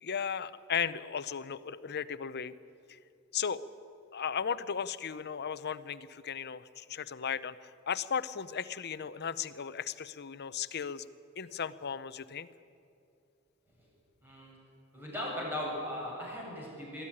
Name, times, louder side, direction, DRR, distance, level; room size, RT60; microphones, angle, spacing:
voice 1, 0.0-2.5 2.9-3.0 3.3-3.6 4.1-11.0 11.4-12.5, left 7 dB, 50° left, 14 dB, 0.7 m, -36 dB
voice 2, 14.2-14.5 14.9-17.0, left 1 dB, 10° right, -4 dB, 7.6 m, -38 dB
22.0 x 14.5 x 10.0 m, 2.5 s
head